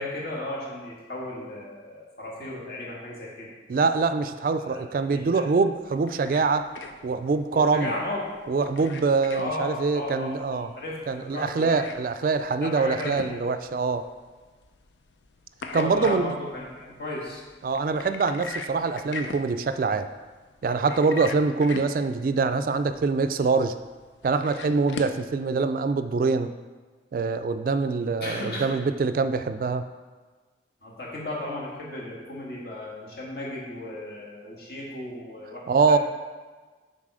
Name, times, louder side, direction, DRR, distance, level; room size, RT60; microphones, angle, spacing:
voice 1, 0.0-3.5 4.7-4.8 5.1-5.5 7.5-8.3 9.3-11.8 12.6-13.3 15.7-17.4 28.2-28.7 30.8-36.0, left 1 dB, 65° left, -4 dB, 1.8 m, -35 dB
voice 2, 3.7-6.7 7.0-7.9 8.5-10.7 11.1-14.1 15.7-16.3 17.6-20.1 20.6-23.8 24.2-26.5 27.1-29.9 35.7-36.0, right 4 dB, 50° right, 10 dB, 0.3 m, -24 dB
sound 1, 5.8-25.3, left 3 dB, 90° left, 0.5 m, -41 dB
7.4 x 4.1 x 4.9 m, 1.4 s
head